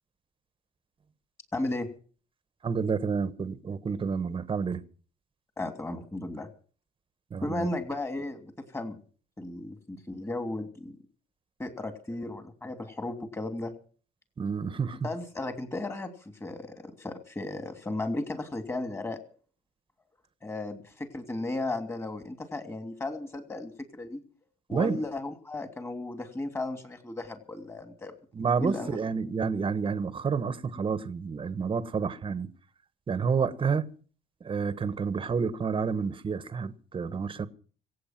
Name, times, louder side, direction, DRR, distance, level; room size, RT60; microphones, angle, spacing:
voice 1, 1.5-1.9 5.6-6.5 7.4-9.0 9.4-11.0 11.6-13.7 15.0-19.2 20.4-24.2 24.7-28.1 28.6-29.0, left 2 dB, 15° left, 2.9 m, -35 dB
voice 2, 2.6-4.8 7.3-7.7 14.4-15.1 24.7-25.0 28.3-32.5 33.1-33.9 34.4-37.5, right 5 dB, 30° right, 1.3 m, -29 dB
25.5 x 8.5 x 5.9 m
cardioid pair, 110°, 17 cm